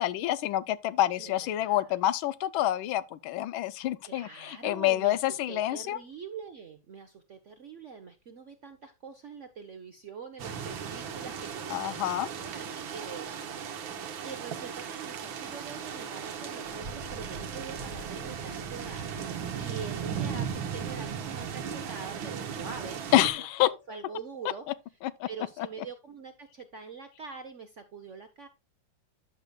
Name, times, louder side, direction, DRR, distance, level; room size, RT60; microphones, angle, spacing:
voice 1, 0.0-6.0 11.7-12.3 23.1-23.7 25.0-25.3 25.6-25.7, left 13 dB, 80° left, 1.4 m, -27 dB
voice 2, 1.2-1.9 4.0-14.0 14.2-19.1 19.6-23.4 23.7-24.6 25.3-28.5, right 5 dB, 55° right, 0.8 m, -44 dB
sound 1, 10.4-23.3, right 7 dB, 75° right, 1.8 m, -37 dB
10.5 x 6.6 x 2.3 m
omnidirectional pair, 2.2 m